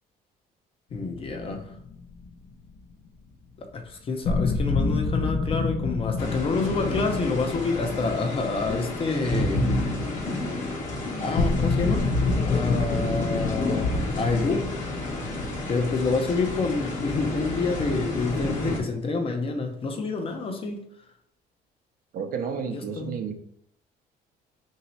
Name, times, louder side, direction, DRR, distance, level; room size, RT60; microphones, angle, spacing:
sound 1, 0.9-2.3 2.6-2.7 3.7-3.8 4.2-9.6 9.9-10.0 10.5-10.6 11.4-16.5, left 4 dB, 80° left, 0.6 m, -29 dB
voice 1, 0.9-1.7 3.6-9.6 11.2-12.1 12.5-14.7 15.7-20.8 22.7-23.1, left 3 dB, 35° left, 4 dB, 0.6 m, -28 dB
sound 2, 6.2-18.8, left 1 dB, 50° left, 1.2 m, -30 dB
voice 2, 22.1-23.4, right 6 dB, 60° right, 6 dB, 0.6 m, -31 dB
2.9 x 2.8 x 4.3 m, 0.74 s
cardioid pair, 110°, 17 cm